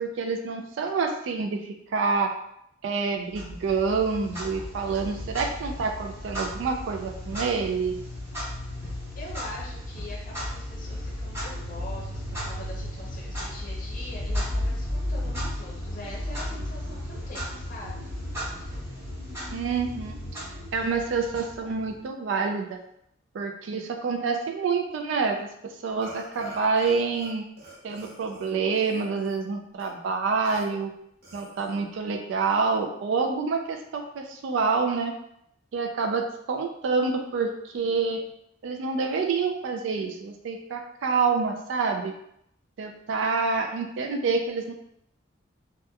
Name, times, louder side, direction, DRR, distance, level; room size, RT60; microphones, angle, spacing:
voice 1, 0.0-2.3 2.8-8.0 19.5-20.2 20.7-22.8 23.3-25.4 25.6-27.4 27.8-30.9 31.3-35.2 35.7-38.2 38.6-42.1 42.8-44.7, right 4 dB, 70° right, 3 dB, 0.3 m, -27 dB
Clock, 3.3-22.0, left 1 dB, 15° right, 0.8 m, -34 dB
voice 2, 9.1-18.1, left 1 dB, 45° left, -4 dB, 0.6 m, -43 dB
Burping eructation, 26.0-27.3 27.6-29.4 29.8-29.9 30.4-30.6 31.2-31.8, right 2 dB, 50° right, 0.8 m, -45 dB
2.8 x 2.2 x 2.2 m, 0.74 s
head